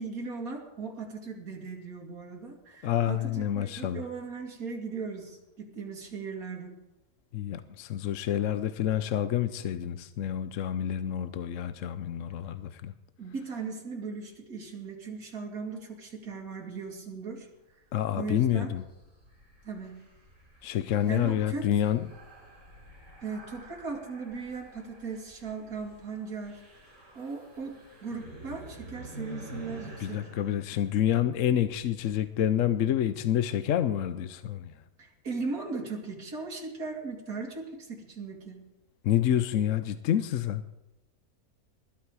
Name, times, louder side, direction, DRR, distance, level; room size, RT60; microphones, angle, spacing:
voice 1, 0.0-6.8 13.2-17.5 18.1-18.7 19.6-20.0 21.1-21.7 23.2-26.6 27.1-30.3 35.0-38.6, right 4 dB, 80° right, 0 dB, 2.8 m, -38 dB
voice 2, 2.8-4.0 7.3-12.9 17.9-18.8 20.6-22.0 30.0-34.7 39.0-40.6, left 10 dB, 65° left, 12 dB, 1.0 m, -28 dB
sound 1, 18.4-32.3, right 1 dB, 60° right, 7.3 m, -49 dB
20.5 x 12.0 x 4.8 m, 0.97 s
omnidirectional pair, 1.5 m